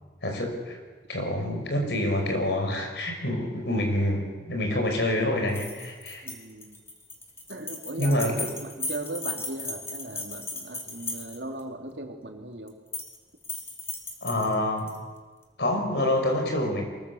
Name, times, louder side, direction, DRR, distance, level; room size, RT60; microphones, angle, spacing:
voice 1, 0.2-0.8 1.1-6.2 8.0-8.5 14.2-14.9 15.6-16.9, left 1 dB, 70° left, 3 dB, 5.4 m, -27 dB
sound 1, 5.5-11.6 12.7-13.2 13.4-15.0, left 3 dB, 15° left, 2.7 m, -36 dB
voice 2, 6.2-6.8 7.5-8.2 8.6-12.8, right 2 dB, 75° right, 3 dB, 2.8 m, -38 dB
23.5 x 22.0 x 7.2 m, 1.4 s
head